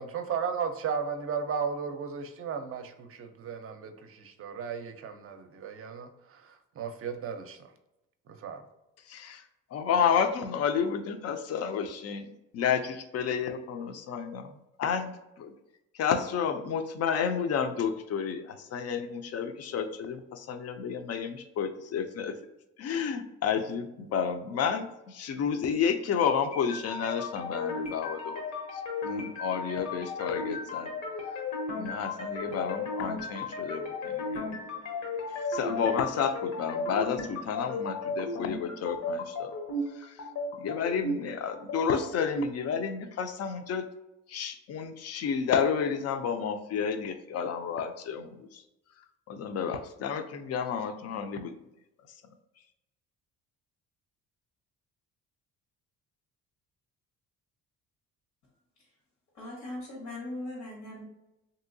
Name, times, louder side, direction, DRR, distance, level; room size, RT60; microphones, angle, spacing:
voice 1, 0.0-7.6 8.4-8.6, right 6 dB, 45° right, 0.5 m, -35 dB
voice 2, 9.1-9.4 9.7-15.5 15.9-22.3 22.8-28.4 28.7-30.9 31.8-34.6 35.5-39.5 40.0-40.2 40.6-43.8 44.3-48.6 49.3-51.5, left 7 dB, 50° left, 0.5 m, -31 dB
sound 1, 26.5-42.5, left 3 dB, 70° left, 0.8 m, -35 dB
voice 3, 59.3-61.0, left 1 dB, 85° left, 1.3 m, -39 dB
3.0 x 2.7 x 2.6 m
cardioid pair, 95°, 32 cm